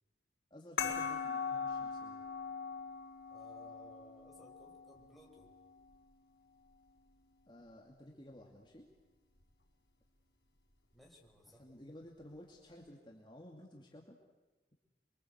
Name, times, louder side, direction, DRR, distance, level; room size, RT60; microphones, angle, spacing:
voice 1, 0.5-2.2 7.5-8.9 11.4-14.2, left 1 dB, 25° left, 0 dB, 2.4 m, -54 dB
sound 1, 0.8-5.9, left 6 dB, 85° left, 5.0 m, -41 dB
voice 2, 3.3-5.5 10.9-11.6, equal, ahead, -2 dB, 4.9 m, -59 dB
28.0 x 23.5 x 8.0 m, 1.1 s
head